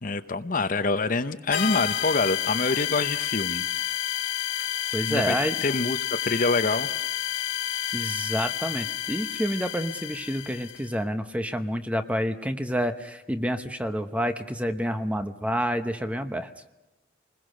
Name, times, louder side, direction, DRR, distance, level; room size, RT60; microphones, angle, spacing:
voice 1, 0.0-3.6 5.0-5.3 5.6-6.0 6.2-6.9, left 3 dB, 45° left, 10 dB, 0.9 m, -26 dB
sound 1, 1.5-10.9, left 11 dB, 80° left, 1.3 m, -30 dB
voice 2, 4.9-5.6 7.9-16.5, equal, 5° right, 8 dB, 0.9 m, -28 dB
29.0 x 21.0 x 6.5 m, 1.0 s
head